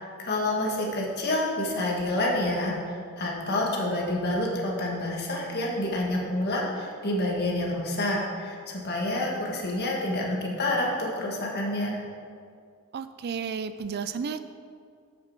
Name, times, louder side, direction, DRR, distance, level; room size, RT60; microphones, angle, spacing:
voice 1, 0.0-12.0, left 1 dB, 50° left, -2 dB, 1.7 m, -28 dB
voice 2, 12.9-14.4, right 6 dB, 45° right, 11 dB, 0.4 m, -32 dB
7.8 x 6.7 x 6.0 m, 2.3 s
head